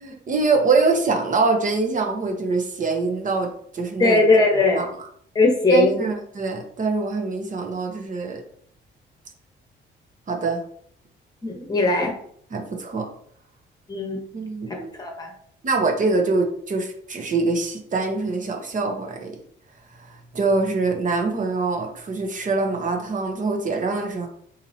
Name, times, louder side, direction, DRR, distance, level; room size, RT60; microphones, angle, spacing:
voice 1, 0.0-4.2 4.8-4.9 5.7-8.4 10.3-10.6 12.5-13.1 14.3-14.7 15.6-19.4 20.3-24.3, right 3 dB, 40° right, 3 dB, 0.8 m, -24 dB
voice 2, 4.0-4.8 5.3-6.0 11.4-12.1 13.9-14.2 14.7-15.3, left 2 dB, 20° left, 2 dB, 1.1 m, -19 dB
4.0 x 2.8 x 2.7 m, 0.64 s
cardioid pair, 90°, 20 cm